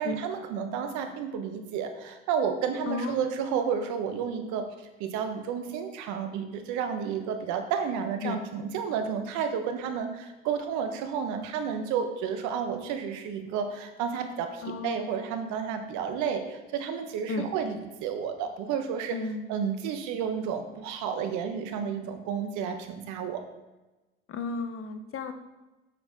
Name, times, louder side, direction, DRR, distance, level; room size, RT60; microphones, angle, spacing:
voice 1, 0.0-19.2 19.5-23.4, right 7 dB, 65° right, 7 dB, 1.1 m, -31 dB
voice 2, 2.8-3.3 8.2-8.4 14.6-15.2 17.3-17.5 19.1-19.5 24.3-25.3, left 4 dB, 40° left, 8 dB, 0.9 m, -33 dB
7.8 x 6.4 x 3.7 m, 1.1 s
hypercardioid pair, 65°, 32 cm